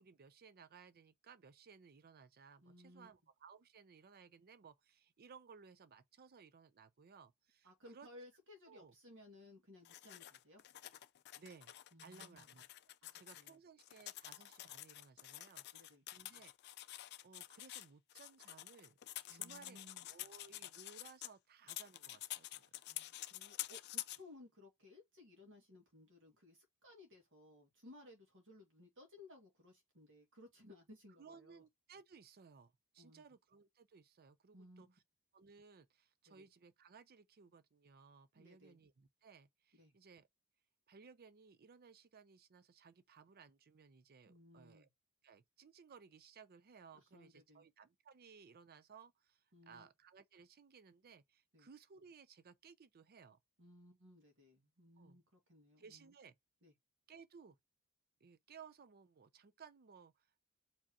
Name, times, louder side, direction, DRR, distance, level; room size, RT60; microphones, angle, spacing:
voice 1, 0.0-8.1 8.7-8.9 11.3-11.7 12.0-12.6 13.1-16.5 16.8-16.9 17.2-19.0 19.3-19.8 20.1-22.7 31.2-34.9 35.3-40.3 40.9-44.9 45.2-53.4 55.0-55.2 55.8-56.4 57.1-57.6 58.2-60.5, right 5 dB, 45° right, 0.5 m, -60 dB
voice 2, 2.6-3.1 7.6-10.6 11.9-12.5 13.0-13.6 15.7-16.0 19.3-20.1 22.9-31.6 33.0-33.2 34.5-35.0 36.3-36.4 38.3-38.8 39.7-39.9 44.3-44.9 47.0-47.7 49.5-49.9 51.5-51.7 53.6-56.1 56.6-56.7, left 1 dB, 60° right, 2.0 m, -60 dB
sound 1, 9.8-13.5 13.8-21.3 21.7-24.2, left 15 dB, 50° left, 0.4 m, -49 dB
5.0 x 3.4 x 2.8 m
head